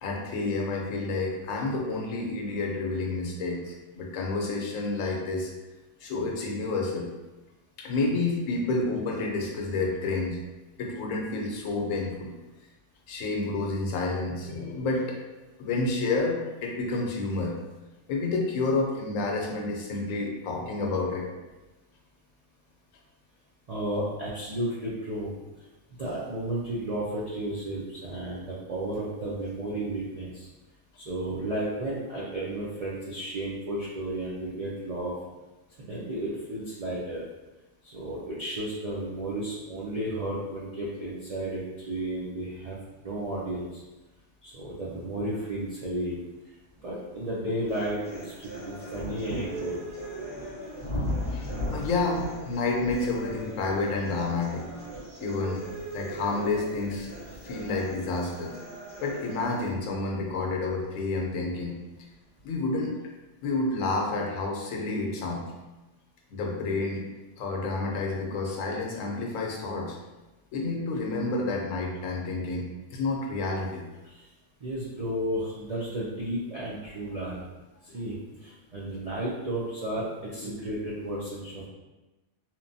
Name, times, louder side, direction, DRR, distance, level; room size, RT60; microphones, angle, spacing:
voice 1, 0.0-5.5 6.0-7.1 7.8-10.4 10.8-12.3 13.1-15.2 15.6-17.6 18.1-21.3 51.3-54.6 55.2-55.7 55.9-57.1 57.4-58.5 59.0-61.8 62.4-62.9 63.4-65.5 66.3-67.0 67.4-70.0 70.5-73.8 77.9-78.2 78.8-78.9 80.4-80.7, left 3 dB, 85° left, 0 dB, 1.0 m, -29 dB
voice 2, 23.7-25.3 26.0-30.5 31.0-35.1 35.8-37.2 37.9-42.8 43.0-43.8 44.4-46.1 46.8-49.8 74.1-74.3 74.6-77.4 77.8-81.7, right 1 dB, 75° right, -7 dB, 0.3 m, -33 dB
sound 1, 46.0-46.1 46.7-61.4 62.3-62.4, left 1 dB, 25° right, 1.1 m, -39 dB
sound 2, 47.7-59.7, right 2 dB, 15° left, 0.3 m, -41 dB
2.9 x 2.1 x 2.6 m, 1.1 s
omnidirectional pair, 1.3 m